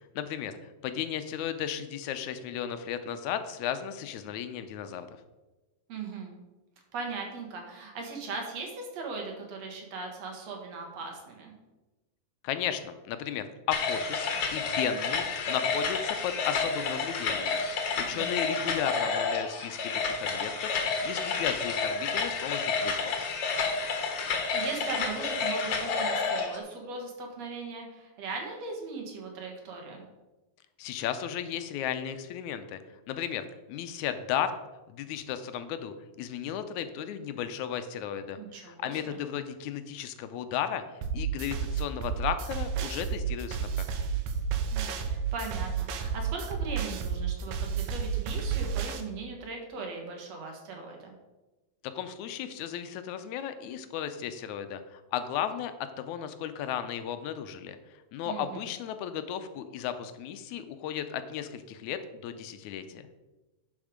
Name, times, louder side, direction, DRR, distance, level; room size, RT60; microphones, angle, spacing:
voice 1, 0.2-5.1 12.4-23.1 30.8-32.8 33.1-34.5 34.9-40.8 41.1-43.7 51.8-57.8 58.1-63.1, left 9 dB, 80° left, 10 dB, 2.0 m, -35 dB
voice 2, 5.9-6.3 6.9-11.5 18.1-18.6 24.1-30.0 38.4-39.2 44.7-51.1 58.2-58.6, right 4 dB, 60° right, 1 dB, 2.5 m, -39 dB
sound 1, 13.7-26.6, left 4 dB, 60° left, 1.9 m, -30 dB
sound 2, 41.0-49.0, right 7 dB, 80° right, 2.3 m, -31 dB
11.0 x 5.2 x 5.0 m, 1.1 s
omnidirectional pair, 3.4 m